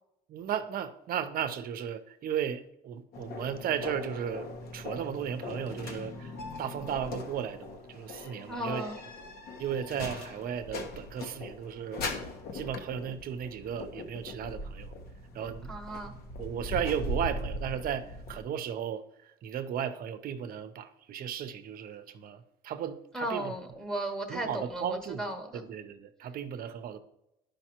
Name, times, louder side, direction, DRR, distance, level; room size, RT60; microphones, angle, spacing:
voice 1, 0.3-6.3 6.6-8.8 9.6-12.0 12.5-14.9 15.3-15.7 16.0-23.5 24.3-25.2 25.5-27.0, right 9 dB, 60° right, 0.7 m, -35 dB
sound 1, 3.1-18.4, left 2 dB, 65° left, 1.0 m, -40 dB
voice 2, 8.5-9.0 15.7-16.1 23.1-25.6, right 1 dB, 5° left, 1.0 m, -35 dB
11.0 x 5.2 x 2.9 m
cardioid pair, 110°, 17 cm